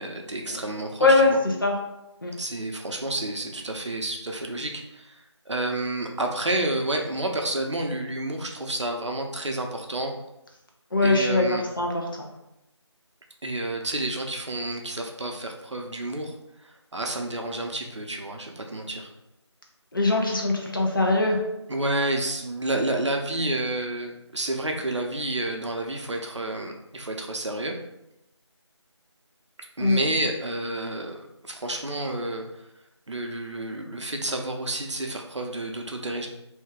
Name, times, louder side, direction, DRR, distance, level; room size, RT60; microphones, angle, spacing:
voice 1, 0.0-1.4 2.4-5.2 5.5-10.1 11.0-11.7 13.4-16.3 16.6-19.1 21.7-27.7 29.8-32.5 33.1-36.3, right 1 dB, 75° right, 2 dB, 0.6 m, -30 dB
voice 2, 1.0-1.3 1.6-1.7 2.2-2.3 10.9-12.3 19.9-21.4 29.8-30.0, left 3 dB, 45° left, 0 dB, 0.6 m, -22 dB
2.6 x 2.2 x 3.6 m, 0.88 s
figure-of-eight pair, 170°, 15 cm